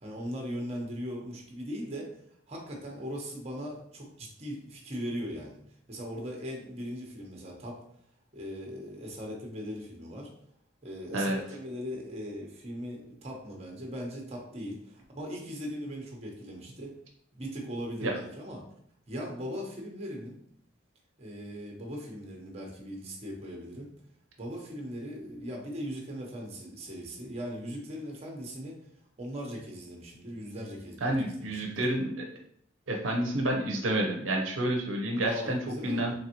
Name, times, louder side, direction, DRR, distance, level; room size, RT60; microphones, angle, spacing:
voice 1, 0.0-2.1 2.5-5.6 5.9-7.8 8.3-10.3 10.8-16.9 17.3-18.6 19.1-20.4 21.2-23.9 24.4-28.8 29.2-31.1 31.5-31.9 35.2-36.1, equal, 35° right, 0 dB, 0.9 m, -39 dB
voice 2, 31.0-32.3 32.9-36.1, right 1 dB, 75° right, 1 dB, 0.7 m, -29 dB
3.9 x 3.4 x 2.9 m, 0.67 s
head